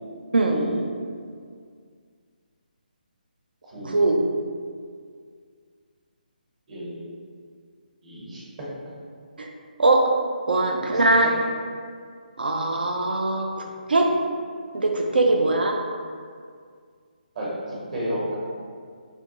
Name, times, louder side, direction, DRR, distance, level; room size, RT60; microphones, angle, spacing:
voice 1, 0.5-1.0 3.6-4.5 6.7-7.1 8.0-8.7 10.9-11.3 13.9-14.1 15.1-15.3 17.3-18.3, right 1 dB, 50° right, -7 dB, 1.1 m, -33 dB
voice 2, 3.9-4.2 9.4-9.5 9.8-10.1 10.5-11.3 12.4-14.1 14.7-15.8, right 2 dB, 85° right, 2 dB, 0.5 m, -21 dB
3.3 x 2.8 x 2.9 m, 2.1 s
hypercardioid pair, 160°, 5 cm